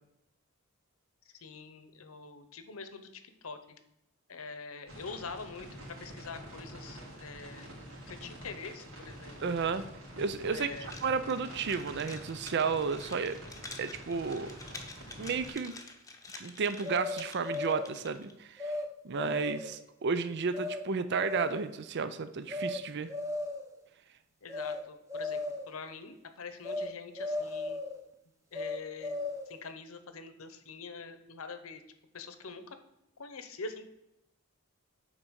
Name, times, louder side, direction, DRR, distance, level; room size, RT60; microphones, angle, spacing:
voice 1, 1.2-3.8 4.3-7.7 8.1-9.4 10.5-10.9 24.4-25.4 25.7-27.8 28.5-29.2 29.5-31.8 32.1-32.8 33.2-33.9, left 4 dB, 80° left, 10 dB, 0.9 m, -45 dB
sound 1, 4.9-15.5, right 1 dB, 75° right, 3.0 m, -47 dB
voice 2, 9.4-9.9 10.2-10.7 11.0-13.4 13.8-14.6 15.2-15.8 16.4-18.8 19.0-23.1, right 5 dB, 55° right, 12 dB, 0.5 m, -32 dB
sound 2, 10.8-18.3, left 3 dB, 15° left, 0.8 m, -49 dB
sound 3, 16.8-17.9 18.6-18.9 19.2-19.8 20.5-20.8 21.1-21.7 22.5-22.8 23.1-23.7 24.5-24.8 25.1-25.7 26.6-26.9 27.2-28.0 28.5-29.6, left 2 dB, 15° right, 0.9 m, -36 dB
9.0 x 4.0 x 6.3 m, 0.85 s
head